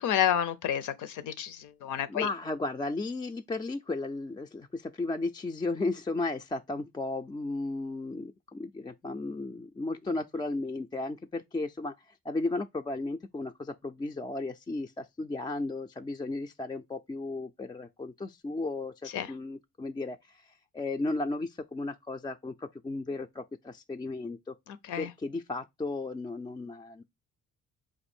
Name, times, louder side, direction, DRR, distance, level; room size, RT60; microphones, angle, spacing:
voice 1, 0.0-2.3 19.1-19.3 24.9-25.1, left 10 dB, 80° left, 0.6 m, -29 dB
voice 2, 2.1-11.9 12.2-24.5 25.0-27.0, left 2 dB, 15° left, 0.3 m, -34 dB
4.4 x 2.6 x 4.2 m
cardioid pair, 90°, 30 cm